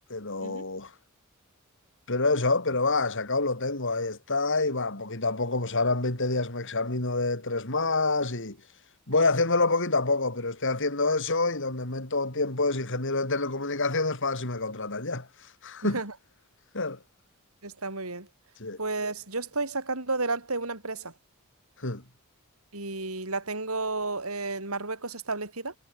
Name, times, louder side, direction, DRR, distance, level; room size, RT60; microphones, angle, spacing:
voice 1, 0.1-0.9 2.1-8.6 9.1-15.3 15.6-16.0 16.7-17.0 18.6-18.8 21.8-22.0, left 3 dB, 60° left, 4.7 m, -27 dB
voice 2, 15.8-16.1 17.6-18.3 18.8-21.1 22.7-25.8, right 3 dB, 75° right, 7.6 m, -32 dB
head